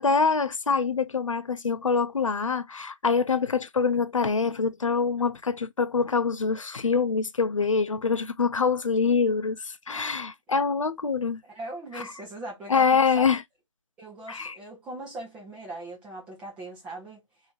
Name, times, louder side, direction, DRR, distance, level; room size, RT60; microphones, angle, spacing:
voice 1, 0.0-11.4 11.9-12.0 12.7-13.4 14.3-14.6, left 5 dB, 90° left, 0.6 m, -25 dB
voice 2, 11.5-12.9 13.1-13.3 14.0-17.2, right 2 dB, 5° right, 1.0 m, -39 dB
3.3 x 2.9 x 3.1 m
figure-of-eight pair, 160°, 16 cm